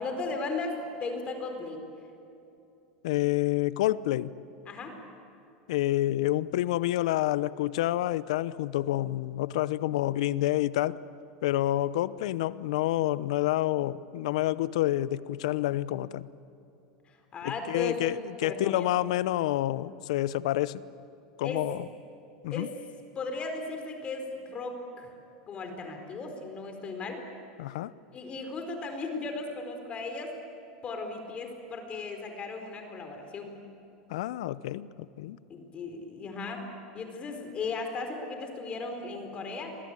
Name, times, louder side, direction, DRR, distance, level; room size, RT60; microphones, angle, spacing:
voice 1, 0.0-1.8 4.7-5.0 17.0-18.0 18.4-18.9 21.4-21.6 22.5-22.7 23.1-25.1 25.5-27.2 28.1-30.4 30.8-33.6 35.5-36.6 36.9-39.8, left 3 dB, 35° left, 5 dB, 4.6 m, -36 dB
voice 2, 3.0-4.3 5.7-11.0 11.4-16.3 17.4-20.8 21.4-21.8 22.4-22.7 27.6-27.9 34.1-35.4, left 15 dB, 75° left, 18 dB, 0.8 m, -28 dB
28.0 x 22.5 x 8.9 m, 2.7 s
hypercardioid pair, 100°, 3 cm